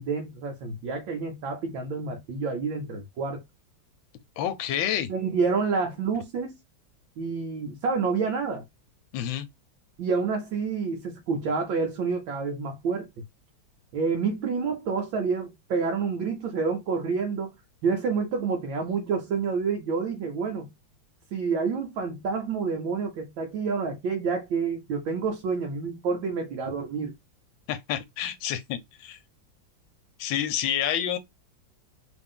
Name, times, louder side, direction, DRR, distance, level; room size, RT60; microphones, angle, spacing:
voice 1, 0.0-3.4 5.1-6.6 7.2-8.6 10.0-13.1 13.9-17.5 17.8-20.7 21.3-27.2, right 5 dB, 80° right, 1.5 m, -28 dB
voice 2, 4.4-5.1 9.1-9.5 27.7-29.2 30.2-31.2, left 10 dB, 85° left, 1.4 m, -29 dB
3.5 x 2.6 x 3.6 m
omnidirectional pair, 2.1 m